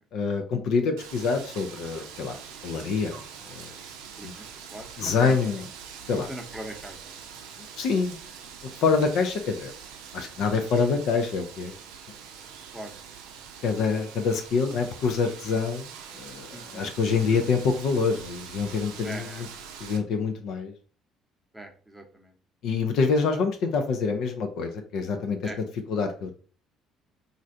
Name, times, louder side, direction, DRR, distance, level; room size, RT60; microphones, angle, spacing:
voice 1, 0.1-2.4 2.6-3.2 3.4-3.7 4.2-4.3 5.0-5.6 6.1-6.3 7.8-8.2 8.8-9.7 10.1-11.7 13.6-19.5 19.8-20.7 22.6-25.4 25.9-26.4, left 5 dB, 65° left, 6 dB, 0.5 m, -26 dB
Wind, 1.0-20.0, right 7 dB, 70° right, 0.5 m, -44 dB
voice 2, 4.2-5.4 6.1-7.2 12.7-12.9 16.5-16.9 17.3-17.4 19.0-19.5 21.5-22.3 25.4-25.6, right 1 dB, 5° right, 2 dB, 0.8 m, -41 dB
3.1 x 2.5 x 2.6 m, 0.40 s
hypercardioid pair, 55°, 0 cm